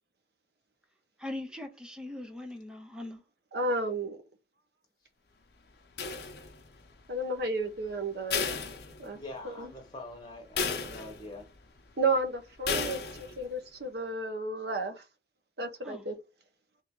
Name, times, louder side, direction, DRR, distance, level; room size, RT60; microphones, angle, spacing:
voice 1, 1.2-3.2 15.8-16.1, left 1 dB, 5° right, 0.6 m, -40 dB
voice 2, 3.5-4.2 7.1-8.5 9.0-9.2 9.4-9.7 12.0-15.0 15.6-16.2, right 2 dB, 60° right, 0.9 m, -32 dB
sound 1, 6.0-6.8 8.3-9.4 9.8-9.9 10.6-11.5 12.7-13.4, left 5 dB, 60° left, 0.7 m, -34 dB
voice 3, 9.1-11.5, left 2 dB, 25° left, 1.1 m, -44 dB
3.7 x 2.8 x 3.6 m
head